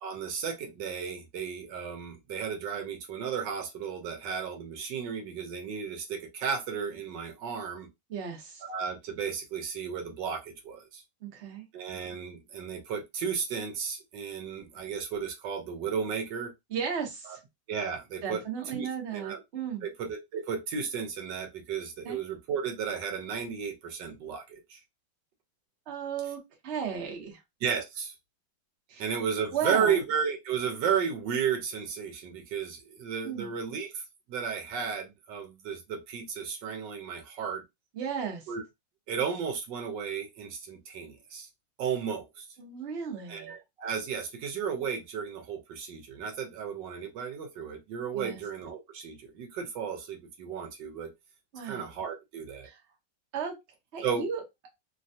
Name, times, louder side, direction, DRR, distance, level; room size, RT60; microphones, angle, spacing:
voice 1, 0.0-7.9 8.6-11.0 11.7-16.5 17.7-18.4 18.7-19.4 19.8-24.8 27.6-28.1 29.0-37.6 38.5-38.6 39.1-41.5 41.8-42.5 43.3-51.1 51.6-52.7 54.0-54.3, right 7 dB, 70° right, 1.3 m, -34 dB
voice 2, 8.1-8.6 11.2-11.6 16.7-17.4 18.2-19.8 22.0-22.2 25.9-27.4 28.9-29.0 29.5-30.0 33.2-33.5 37.9-38.5 42.6-43.5 48.1-48.4 51.5-51.9 52.6-52.8 53.3-53.5 53.9-54.4, right 7 dB, 50° right, 0.8 m, -35 dB
3.2 x 2.2 x 2.6 m
omnidirectional pair, 2.1 m